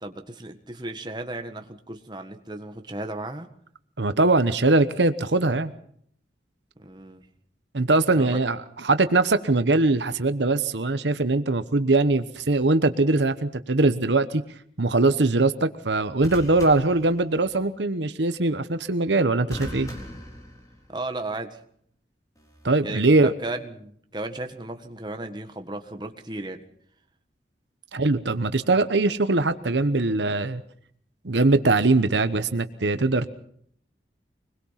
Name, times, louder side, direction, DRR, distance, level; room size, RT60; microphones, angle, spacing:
voice 1, 0.0-3.5 6.8-7.2 8.1-8.4 20.9-21.6 22.8-26.6, right 2 dB, 25° right, 6 dB, 1.6 m, -35 dB
voice 2, 4.0-5.7 7.7-14.4 14.8-19.9 22.6-23.3 27.9-30.6 31.2-33.3, right 2 dB, 80° right, 11 dB, 1.1 m, -21 dB
sound 1, 12.3-12.7 16.2-17.7 19.5-21.2 22.4-22.7, equal, 20° left, 4.0 m, -40 dB
24.5 x 21.5 x 5.9 m, 0.66 s
head